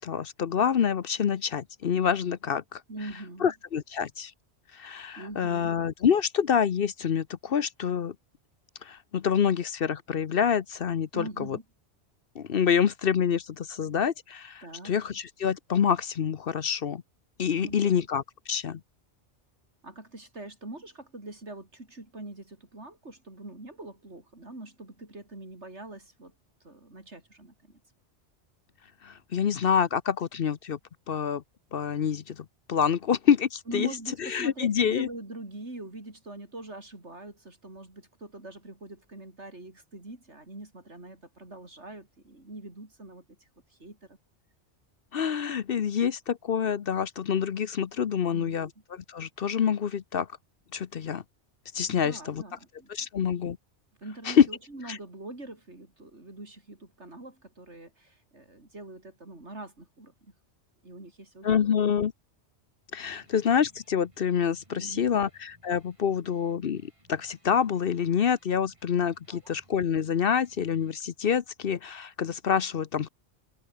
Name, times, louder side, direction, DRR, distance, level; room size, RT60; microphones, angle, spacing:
voice 1, 0.0-2.8 3.4-4.3 4.7-8.1 8.8-11.6 12.4-17.0 17.4-18.8 29.0-30.8 31.1-31.4 31.7-33.9 34.2-35.1 45.1-50.3 50.7-51.2 51.7-52.4 52.9-53.6 54.3-54.5 54.9-55.0 61.4-62.1 62.9-73.1, left 7 dB, 55° left, 0.9 m, -27 dB
voice 2, 2.9-3.5 5.2-5.8 11.1-11.6 14.6-15.0 17.5-18.1 19.8-26.3 26.6-27.8 33.7-44.2 48.3-48.7 51.9-53.1 54.0-60.3 60.8-61.8 64.7-65.2 69.3-69.5, right 2 dB, 75° right, 5.6 m, -43 dB
Electric guitar, 63.0-71.0, right 1 dB, 25° right, 5.9 m, -63 dB
omnidirectional pair, 1.2 m